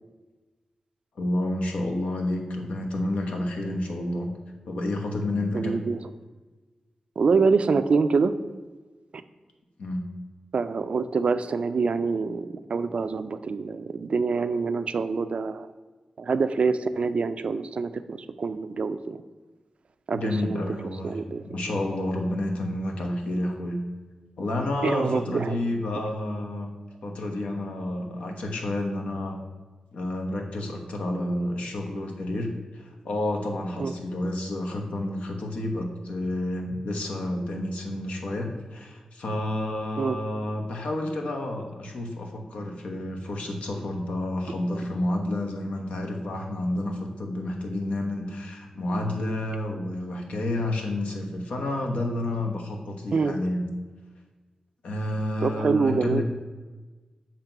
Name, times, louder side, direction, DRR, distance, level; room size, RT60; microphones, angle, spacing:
voice 1, 1.2-4.3 4.7-5.8 9.8-10.1 20.1-21.2 21.5-23.8 24.4-26.7 27.0-29.4 29.9-53.6 54.8-56.2, left 1 dB, 85° left, 2 dB, 1.0 m, -30 dB
voice 2, 5.5-6.0 7.2-8.3 10.5-15.7 16.2-19.2 20.1-20.6 21.0-21.4 24.8-25.6 33.8-33.9 40.0-40.2 53.1-53.3 55.4-56.2, right 4 dB, 65° right, 11 dB, 0.4 m, -25 dB
7.3 x 2.9 x 5.8 m, 1.3 s
cardioid pair, 70°, 2 cm